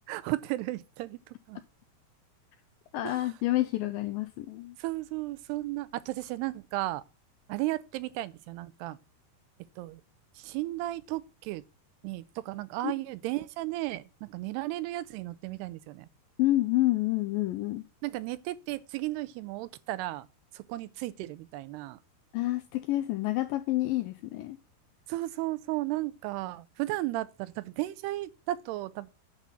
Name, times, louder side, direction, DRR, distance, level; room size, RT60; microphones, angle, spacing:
voice 1, 0.1-1.2 1.5-1.6 3.0-3.3 4.8-7.0 7.5-9.0 9.8-10.0 10.4-11.6 12.0-16.1 18.0-20.3 20.5-22.0 25.1-29.1, right 17 dB, 85° right, 2.7 m, -34 dB
voice 2, 2.9-4.8 12.8-12.9 16.4-17.8 22.3-24.6, left 16 dB, 85° left, 2.1 m, -28 dB
9.8 x 4.1 x 7.3 m
omnidirectional pair, 4.7 m